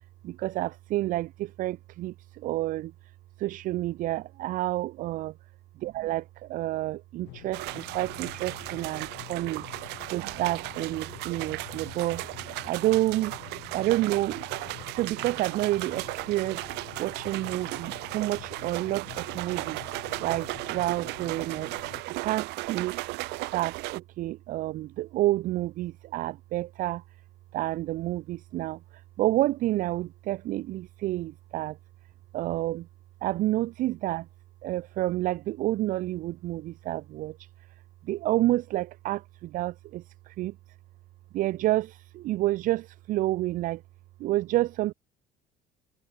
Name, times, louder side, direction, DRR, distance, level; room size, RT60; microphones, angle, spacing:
voice 1, 0.2-2.9 3.4-5.3 6.0-9.6 10.1-12.2 12.7-13.3 13.7-14.4 14.9-16.6 17.0-19.8 20.2-21.7 22.2-23.0 23.5-27.0 27.5-28.8 29.2-31.8 32.3-32.9 33.2-34.3 34.6-37.4 38.1-40.5 41.3-43.8 44.2-44.9, right 16 dB, 50° right, 0.9 m, -29 dB
sound 1, 7.2-22.0, left 23 dB, 80° left, 7.9 m, -47 dB
sound 2, 7.5-24.0, right 22 dB, 75° right, 3.6 m, -36 dB
cardioid pair, 175°, 18 cm